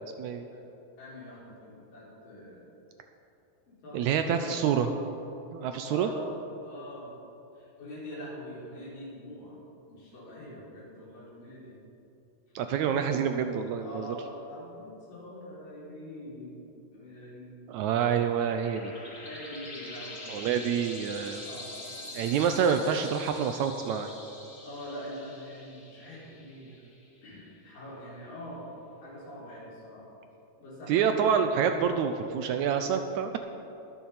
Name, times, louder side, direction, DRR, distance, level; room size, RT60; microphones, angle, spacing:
voice 1, 1.0-2.7 3.7-5.1 5.8-6.3 6.6-7.1 7.6-9.6 9.9-11.8 12.6-13.0 13.8-17.8 19.0-20.8 21.4-22.1 24.6-26.8 27.2-28.7 29.0-30.0 30.6-31.3, left 1 dB, 90° left, -6 dB, 5.6 m, -44 dB
voice 2, 3.9-4.9 5.5-6.1 12.6-14.2 17.7-18.9 20.3-21.4 22.1-24.1 30.9-33.4, right 7 dB, 80° right, 7 dB, 1.7 m, -27 dB
sound 1, 18.0-27.2, left 2 dB, 25° left, 2.8 m, -45 dB
21.0 x 7.0 x 5.7 m, 2.8 s
omnidirectional pair, 3.8 m